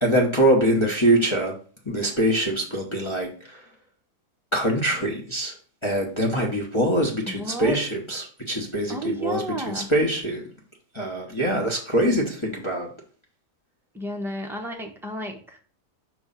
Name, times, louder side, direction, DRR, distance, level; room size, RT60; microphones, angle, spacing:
voice 1, 0.0-1.5 1.9-3.6 4.5-5.5 5.8-10.4 10.9-12.9, right 1 dB, 20° left, -2 dB, 0.9 m, -23 dB
voice 2, 7.3-7.8 8.9-9.9 13.9-15.6, right 1 dB, 5° right, 2 dB, 0.4 m, -32 dB
6.1 x 3.1 x 5.5 m, 0.41 s
omnidirectional pair, 1.8 m